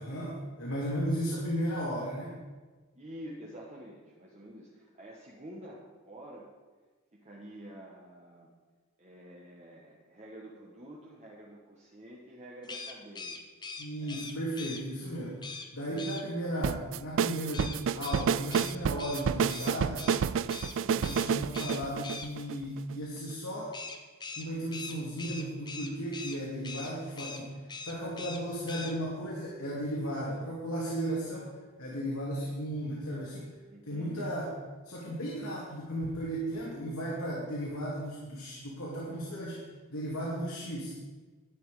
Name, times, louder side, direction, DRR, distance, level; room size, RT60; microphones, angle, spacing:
voice 1, 0.0-2.4 13.8-20.0 20.9-23.7 24.4-27.6 27.9-31.5 31.8-33.5 33.9-34.5 34.8-39.6 39.9-41.0, equal, 80° left, -5 dB, 2.5 m, -35 dB
voice 2, 2.9-6.5 7.1-8.5 9.0-13.4 14.0-14.3 15.8-16.0 20.5-21.3 33.7-34.3, right 1 dB, 30° right, -4 dB, 1.4 m, -48 dB
sound 1, 12.6-14.8 15.4-15.7 16.0-16.2 17.5-20.2 20.5-20.7 21.0-21.3 21.5-22.3 23.7-26.4 26.6-26.9 27.2-27.4 27.7-28.4 28.7-28.9, left 4 dB, 20° left, 0.8 m, -42 dB
sound 2, 16.6-22.9, right 7 dB, 60° right, 0.3 m, -29 dB
11.5 x 9.8 x 5.0 m, 1.3 s
head